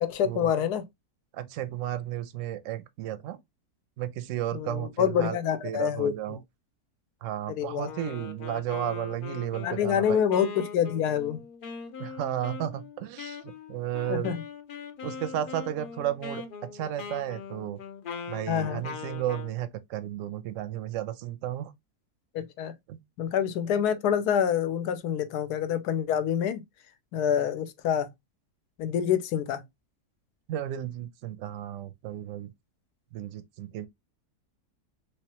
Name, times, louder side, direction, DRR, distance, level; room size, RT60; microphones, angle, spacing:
voice 1, 0.0-0.8 4.5-6.4 7.5-7.9 9.6-11.4 14.1-14.4 18.5-18.8 22.3-22.7 23.2-26.6 27.1-28.1 28.8-29.6, left 8 dB, 85° left, 1.1 m, -27 dB
voice 2, 1.3-3.4 4.0-5.4 5.6-6.4 7.2-10.3 12.0-13.4 13.7-14.3 15.0-16.4 16.7-17.8 18.3-21.7 22.9-23.0 30.5-32.5 33.1-33.9, right 12 dB, 70° right, 0.8 m, -33 dB
Wind instrument woodwind instrument, 7.8-19.6, left 6 dB, 70° left, 0.5 m, -41 dB
3.3 x 3.0 x 2.9 m
omnidirectional pair, 1.7 m